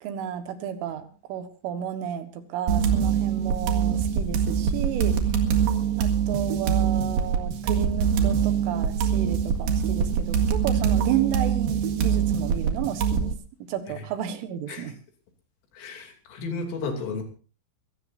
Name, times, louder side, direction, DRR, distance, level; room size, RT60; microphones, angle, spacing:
voice 1, 0.0-5.2 6.0-13.3 13.7-15.0, right 10 dB, 80° right, 9 dB, 4.0 m, -32 dB
sound 1, 2.7-13.3, right 7 dB, 60° right, 3.1 m, -24 dB
voice 2, 15.8-17.2, left 3 dB, 80° left, 4 dB, 5.5 m, -33 dB
23.5 x 16.5 x 2.7 m, 0.37 s
omnidirectional pair, 5.7 m